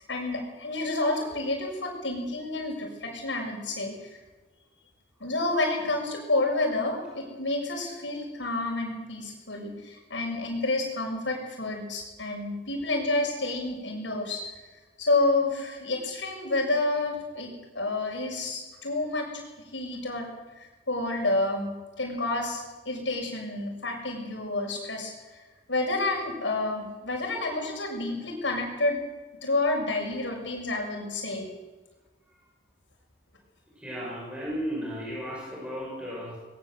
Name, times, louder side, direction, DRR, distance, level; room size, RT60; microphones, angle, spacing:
voice 1, 0.0-4.2 5.2-14.4 15.0-19.3 19.7-20.3 20.6-25.4 25.7-29.0 29.4-31.5, left 2 dB, 80° left, 1 dB, 6.7 m, -29 dB
voice 2, 33.7-36.4, equal, 5° right, -4 dB, 6.5 m, -34 dB
21.5 x 19.0 x 7.9 m, 1.2 s
head